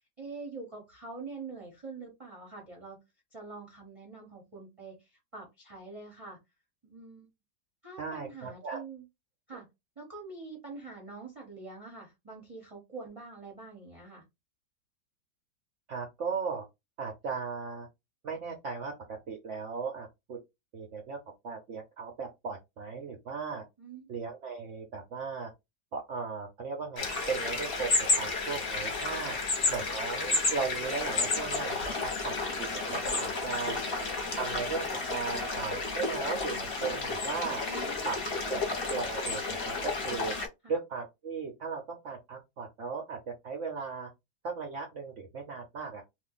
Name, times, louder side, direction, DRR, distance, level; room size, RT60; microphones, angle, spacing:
voice 1, 0.2-3.0 3.3-6.4 6.8-7.3 7.8-9.0 9.5-9.7 10.0-14.2 23.8-24.1 29.4-29.5 33.8-33.9 37.7-38.6 40.6-40.7, right 4 dB, 30° right, 0.6 m, -45 dB
voice 2, 8.0-8.8 15.9-16.6 17.0-17.9 18.2-18.9 19.3-20.4 20.7-21.2 21.4-23.6 24.1-25.5 25.9-27.9 28.2-29.4 29.7-32.3 32.7-33.8 34.3-37.6 38.0-38.6 38.9-40.3 40.7-44.1 44.4-46.0, right 5 dB, 65° right, 0.7 m, -37 dB
sound 1, 27.0-40.5, left 3 dB, 45° left, 0.9 m, -32 dB
2.6 x 2.5 x 3.7 m
omnidirectional pair, 1.9 m